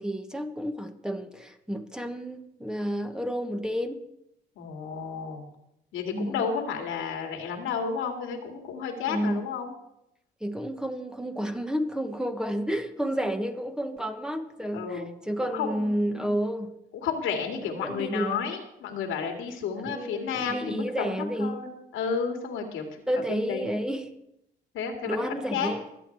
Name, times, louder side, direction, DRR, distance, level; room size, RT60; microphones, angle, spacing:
voice 1, 0.0-4.0 6.1-6.4 9.1-9.5 10.4-16.8 17.6-18.5 19.8-21.6 23.1-24.1 25.0-25.8, equal, 5° right, 1.3 m, -31 dB
voice 2, 4.6-5.4 5.9-9.7 14.7-15.1 15.5-16.3 17.0-21.1 21.4-22.9 23.3-23.7 24.7-25.7, left 6 dB, 85° left, 2.4 m, -32 dB
23.5 x 8.0 x 4.6 m
cardioid pair, 90°, 20 cm